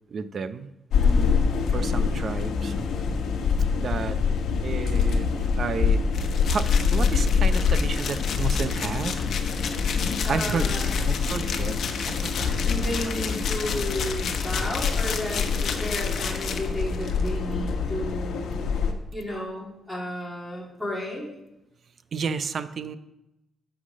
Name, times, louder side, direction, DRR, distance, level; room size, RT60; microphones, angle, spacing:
voice 1, 0.1-0.7 1.7-2.7 3.7-4.2 4.6-5.3 5.6-6.0 6.5-6.6 6.9-9.2 10.3-10.7 11.1-11.8 12.0-12.6 22.1-23.0, right 5 dB, 50° right, 13 dB, 0.6 m, -31 dB
sound 1, 0.9-18.9, left 5 dB, 85° left, 1.2 m, -25 dB
voice 2, 1.0-1.4 10.2-11.0 11.4-11.5 12.1-18.7 19.1-21.3, equal, ahead, -4 dB, 3.0 m, -33 dB
sound 2, 6.1-17.3, left 6 dB, 65° left, 1.0 m, -33 dB
9.7 x 6.0 x 6.4 m, 0.90 s
cardioid pair, 125°, 0 cm